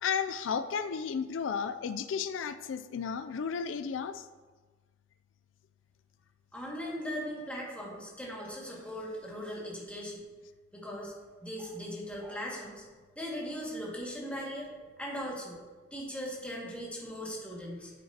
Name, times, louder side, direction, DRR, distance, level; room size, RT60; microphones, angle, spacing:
voice 1, 0.0-4.3, left 6 dB, 85° left, 11 dB, 0.4 m, -33 dB
voice 2, 6.5-10.2 10.7-11.1 11.4-12.8 13.2-15.6 15.9-17.9, equal, 5° left, -4 dB, 1.9 m, -39 dB
9.6 x 7.5 x 2.9 m, 1.4 s
head